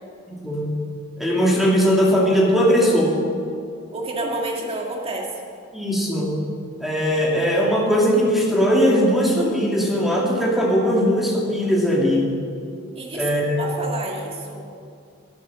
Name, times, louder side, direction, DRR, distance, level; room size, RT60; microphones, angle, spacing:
voice 1, 0.3-0.7 1.2-3.1 5.7-6.3 6.8-12.3 13.1-13.6, equal, ahead, -3 dB, 2.3 m, -19 dB
voice 2, 3.9-5.3 13.0-13.3 13.6-14.6, right 2 dB, 30° right, -1 dB, 1.9 m, -29 dB
12.0 x 12.0 x 6.2 m, 2.4 s
head